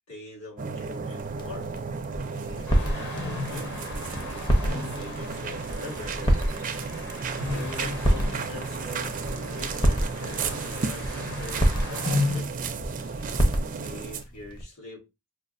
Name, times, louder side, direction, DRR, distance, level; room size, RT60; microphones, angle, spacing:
voice 1, 0.1-1.7 2.5-3.7 4.9-6.4 7.4-12.5 13.8-15.0, left 3 dB, 80° left, 1.8 m, -43 dB
sound 1, 0.6-14.2, right 5 dB, 40° right, 0.4 m, -34 dB
sound 2, 1.2-14.6, equal, 20° left, 0.6 m, -29 dB
sound 3, 2.7-12.4, left 2 dB, 50° left, 1.3 m, -35 dB
4.8 x 2.4 x 2.5 m
head